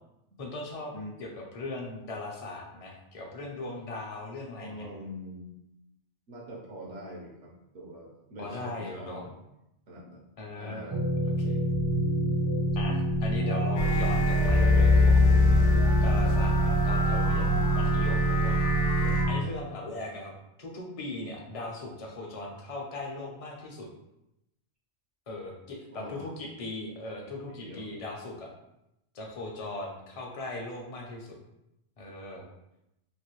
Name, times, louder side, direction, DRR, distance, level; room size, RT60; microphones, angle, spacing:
voice 1, 0.4-0.9 1.2-4.9 8.4-9.2 10.4-11.0 11.4-11.6 12.7-15.5 16.0-18.6 19.3-20.3 20.6-23.9 25.3-28.5 29.1-31.3 32.0-32.4, left 2 dB, 40° left, -1 dB, 0.6 m, -39 dB
voice 2, 4.6-5.5 6.3-9.3 9.9-10.3 10.6-11.0 18.3-18.4 19.0-19.2 25.9-26.3 27.5-27.8, equal, 85° right, -1 dB, 1.1 m, -43 dB
sound 1, 10.9-19.4, equal, 30° right, 0.5 m, -27 dB
sound 2, 13.8-19.2, left 1 dB, 90° left, 1.0 m, -24 dB
3.1 x 2.6 x 3.0 m, 0.86 s
omnidirectional pair, 1.2 m